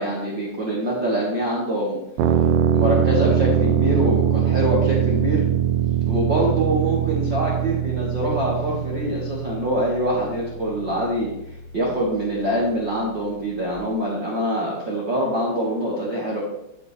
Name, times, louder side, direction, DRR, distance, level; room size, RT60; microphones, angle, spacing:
voice 1, 0.0-2.0 2.7-5.4 6.1-16.4, right 1 dB, 50° right, -5 dB, 1.4 m, -24 dB
sound 1, 2.2-13.8, right 9 dB, 80° right, 2.8 m, -23 dB
11.0 x 8.6 x 3.3 m, 0.85 s
omnidirectional pair, 4.9 m